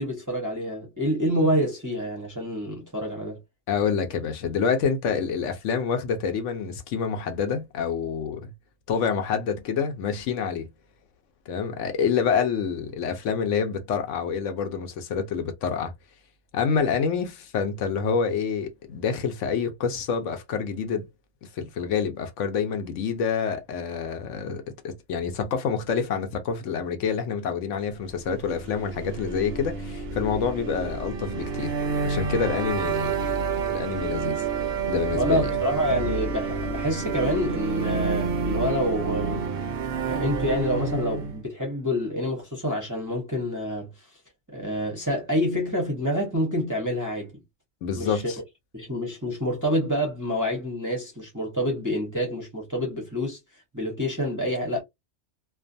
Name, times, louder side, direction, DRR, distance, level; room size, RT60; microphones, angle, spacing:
voice 1, 0.0-3.4 35.1-39.5 40.1-44.1 44.5-47.3 48.0-48.3 48.7-53.4 53.7-54.8, equal, 20° right, 0.6 m, -27 dB
voice 2, 3.7-8.5 8.9-10.7 11.5-15.9 16.5-21.1 21.6-31.7 32.0-33.4 33.7-34.4 34.9-35.6 47.8-48.4, left 6 dB, 65° left, 0.9 m, -27 dB
sound 1, 28.4-41.4, right 5 dB, 65° right, 0.6 m, -29 dB
2.4 x 2.3 x 2.5 m
omnidirectional pair, 1.4 m